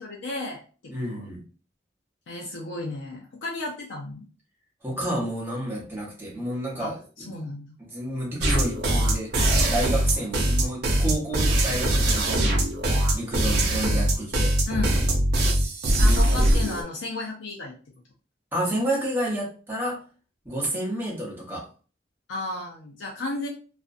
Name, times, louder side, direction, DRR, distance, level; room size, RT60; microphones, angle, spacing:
voice 1, 0.0-1.3 2.3-4.3 6.8-6.9 7.3-7.8 14.7-15.0 16.0-17.7 22.3-23.5, left 2 dB, 90° left, -1 dB, 0.5 m, -33 dB
voice 2, 0.9-1.4 4.8-7.3 7.8-9.3 9.7-12.6 13.1-14.5 16.0-16.2 18.5-20.0 20.4-21.6, right 1 dB, 10° right, -4 dB, 0.8 m, -30 dB
sound 1, 8.4-16.8, right 1 dB, 60° right, 0.5 m, -22 dB
2.4 x 2.1 x 2.5 m, 0.38 s
head